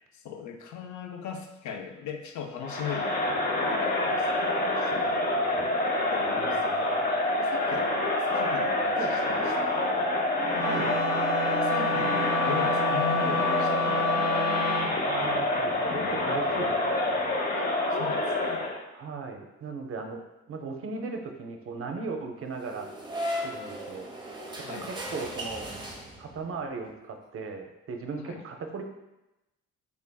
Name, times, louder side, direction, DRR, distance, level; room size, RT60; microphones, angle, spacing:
voice 1, 0.0-3.2 3.6-5.3 5.5-5.7 6.1-6.8 7.4-10.1 11.6-14.1 17.6-17.7 18.0-18.6 24.6-24.9 28.2-28.5, left 7 dB, 70° left, 5 dB, 0.5 m, -39 dB
Crowd, 2.6-18.8, left 1 dB, 30° left, 0.6 m, -27 dB
voice 2, 6.4-7.1 9.0-9.2 10.6-11.0 15.0-17.0 18.9-20.2 20.5-22.9 23.4-24.1 24.6-25.7 26.2-28.8, right 4 dB, 50° right, 4 dB, 0.5 m, -37 dB
Wind instrument woodwind instrument, 10.5-14.9, left 2 dB, 45° left, 1.1 m, -29 dB
sound 1, 22.6-26.5, equal, 15° right, 0.8 m, -36 dB
3.6 x 3.3 x 2.2 m, 0.96 s
cardioid pair, 90°, 30 cm